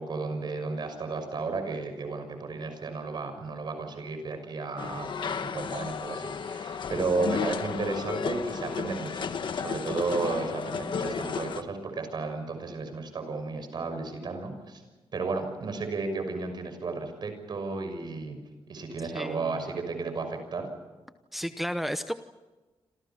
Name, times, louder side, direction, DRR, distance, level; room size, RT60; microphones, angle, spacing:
voice 1, 0.0-9.3 9.6-14.8 15.1-20.7, right 3 dB, 50° right, 7 dB, 6.2 m, -33 dB
sound 1, 4.8-11.6, left 6 dB, 55° left, 1.4 m, -33 dB
voice 2, 19.1-19.6 21.3-22.1, equal, ahead, 9 dB, 0.8 m, -32 dB
28.0 x 27.0 x 5.8 m, 1.2 s
wide cardioid pair, 170°, 10 cm